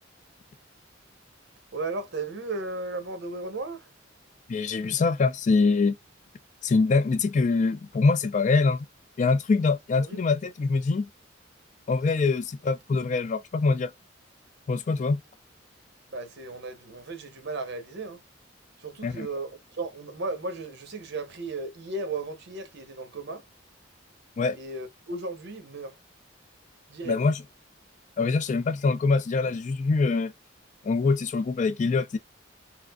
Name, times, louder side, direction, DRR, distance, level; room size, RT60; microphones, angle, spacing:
voice 1, 1.7-3.9 9.9-10.2 16.1-18.2 18.8-23.4 24.5-26.0 26.9-27.2, right 3 dB, 60° right, 0.9 m, -35 dB
voice 2, 4.5-6.0 6.6-8.9 9.2-11.1 11.9-13.9 14.7-15.2 19.0-19.3 24.4-24.6 27.1-27.4 28.2-30.3 30.8-32.2, left 4 dB, 40° left, 0.4 m, -24 dB
4.8 x 2.0 x 2.3 m
head